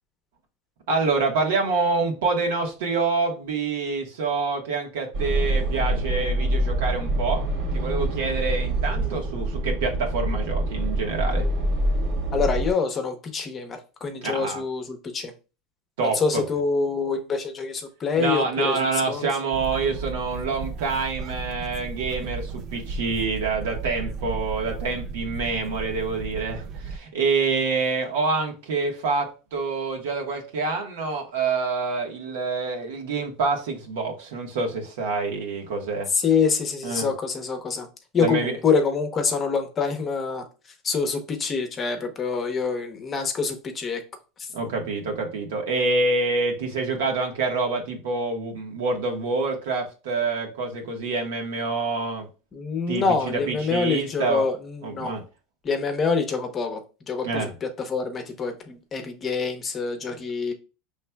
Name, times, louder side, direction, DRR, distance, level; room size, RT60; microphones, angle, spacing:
voice 1, 0.9-7.5 7.7-11.5 14.2-14.6 16.0-16.4 18.2-36.1 36.8-37.1 38.2-38.6 44.5-52.3 52.9-54.4 54.8-55.2 57.2-57.5 60.1-60.2, right 3 dB, 90° right, 1.3 m, -26 dB
sound 1, 5.1-12.7, right 1 dB, 60° right, 1.6 m, -25 dB
voice 2, 12.3-15.3 16.0-19.2 36.1-37.9 38.1-40.5 40.8-44.0 44.4-44.5 52.5-55.1 55.6-60.5, left 5 dB, 25° left, 0.8 m, -26 dB
sound 2, 19.5-27.0, right 4 dB, 40° right, 0.4 m, -34 dB
5.7 x 3.1 x 2.2 m
supercardioid pair, 140°, 0 cm